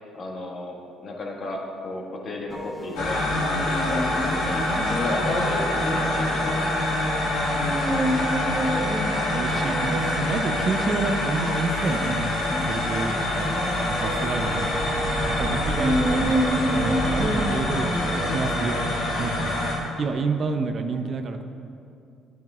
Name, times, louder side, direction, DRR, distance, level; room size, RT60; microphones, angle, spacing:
voice 1, 0.1-4.6 4.9-6.6, left 2 dB, 55° left, -1 dB, 1.6 m, -33 dB
sound 1, 2.5-19.1, right 1 dB, 10° right, 0.9 m, -30 dB
sound 2, 2.9-19.7, left 1 dB, 80° left, 2.0 m, -26 dB
voice 2, 8.6-9.0 9.3-19.5 20.0-21.4, right 4 dB, 50° right, 7 dB, 0.6 m, -30 dB
sound 3, 13.0-18.2, right 1 dB, 65° right, 1.3 m, -35 dB
10.5 x 9.1 x 2.4 m, 2.5 s
hypercardioid pair, 60°, 0 cm